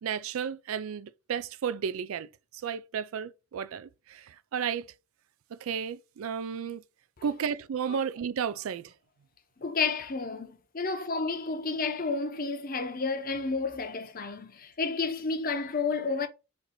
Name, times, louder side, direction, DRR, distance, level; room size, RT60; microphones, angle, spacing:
voice 1, 0.0-2.3 2.6-4.9 5.5-6.8 7.2-8.9, right 7 dB, 75° right, 0.4 m, -33 dB
voice 2, 9.6-16.3, left 4 dB, 40° left, 0.7 m, -31 dB
4.3 x 2.6 x 4.2 m
head